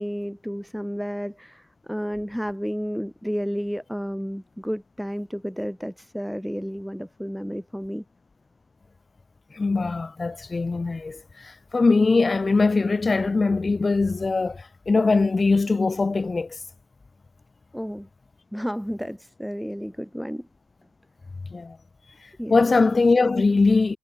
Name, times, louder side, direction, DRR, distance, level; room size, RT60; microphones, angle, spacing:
voice 1, 0.0-8.0 17.7-18.1 18.5-20.5 22.4-22.8, equal, ahead, 1.8 m, -31 dB
voice 2, 9.5-16.6 21.5-21.8 22.5-24.0, left 3 dB, 25° left, 2.9 m, -21 dB
cardioid pair, 90°, 0 cm